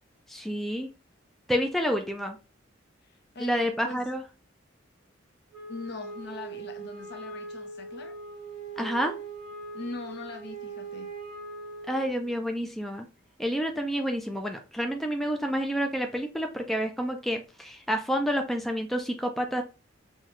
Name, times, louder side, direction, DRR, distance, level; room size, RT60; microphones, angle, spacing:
voice 1, 0.3-0.9 1.5-2.4 3.4-4.2 8.8-9.1 11.9-13.1 13.4-19.6, equal, ahead, 0.4 m, -29 dB
voice 2, 3.0-4.0 5.7-8.1 9.7-11.1, left 3 dB, 60° left, 0.8 m, -41 dB
Wind instrument woodwind instrument, 5.5-12.3, right 3 dB, 25° right, 1.5 m, -41 dB
5.6 x 2.3 x 3.0 m
head